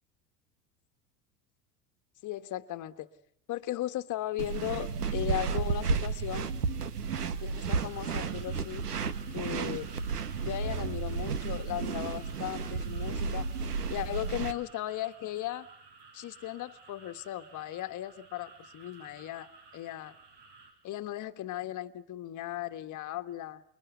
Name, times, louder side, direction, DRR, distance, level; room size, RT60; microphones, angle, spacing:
voice 1, 2.2-3.1 3.5-6.5 7.4-8.8 9.3-9.9 10.4-13.5 13.9-15.7 16.1-20.1 20.8-23.6, left 14 dB, 40° left, 1.5 m, -37 dB
sound 1, 4.4-14.5, right 5 dB, 90° right, 1.6 m, -32 dB
sound 2, 7.8-20.7, right 4 dB, 70° right, 8.0 m, -55 dB
28.0 x 22.5 x 8.3 m
hypercardioid pair, 80°, 45 cm